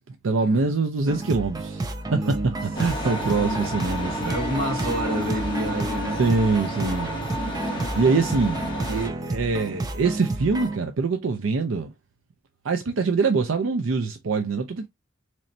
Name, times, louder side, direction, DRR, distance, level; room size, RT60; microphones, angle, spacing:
voice 1, 0.0-2.2 2.8-4.4 6.2-7.1 7.4-11.9 12.6-14.9, right 4 dB, 75° right, 0.5 m, -24 dB
sound 1, 1.1-10.8, right 2 dB, 20° right, 0.4 m, -31 dB
voice 2, 2.0-2.6 3.2-3.6 4.2-6.2 7.2-7.6, right 1 dB, 45° right, 1.2 m, -29 dB
sound 2, 2.7-9.1, left 1 dB, 25° left, 1.1 m, -31 dB
4.3 x 3.1 x 2.5 m
head